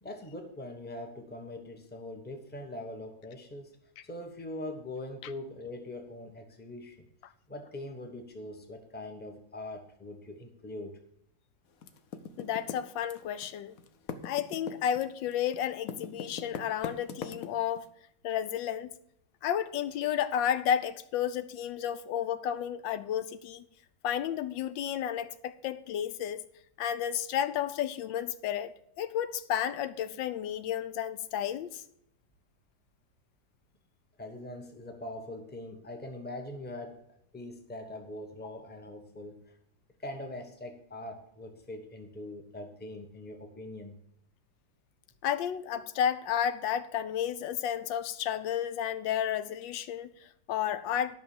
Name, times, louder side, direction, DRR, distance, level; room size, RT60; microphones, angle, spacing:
voice 1, 0.0-3.7 4.0-7.1 7.5-11.0 34.2-37.0 37.3-39.5 40.0-44.0, left 1 dB, 5° left, 1.0 m, -42 dB
Typing, 11.8-13.5 13.8-17.8, left 6 dB, 60° left, 1.1 m, -40 dB
voice 2, 12.4-13.8 14.2-17.8 18.2-18.9 19.4-23.6 24.0-26.4 26.8-31.8 45.2-51.2, left 9 dB, 85° left, 1.3 m, -32 dB
10.5 x 5.9 x 7.1 m
omnidirectional pair, 2.0 m